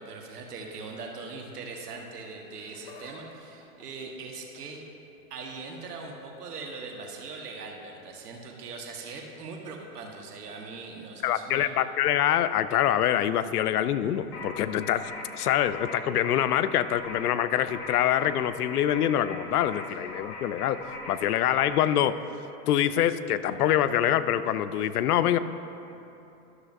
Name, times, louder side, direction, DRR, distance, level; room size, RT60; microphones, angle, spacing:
voice 1, 0.0-4.8 5.3-11.7, right 4 dB, 85° right, 1 dB, 1.4 m, -41 dB
Laughter, 2.3-3.2 3.5-4.8 5.7-6.1 7.4-7.6 8.5-8.6, left 4 dB, 15° left, 0.3 m, -53 dB
voice 2, 11.2-20.8 21.1-22.2 22.7-25.4, left 11 dB, 80° left, 13 dB, 0.5 m, -25 dB
sound 1, 14.3-22.0, left 2 dB, 45° left, 1.9 m, -41 dB
12.5 x 6.6 x 2.5 m, 2.9 s
hypercardioid pair, 130°, 45 cm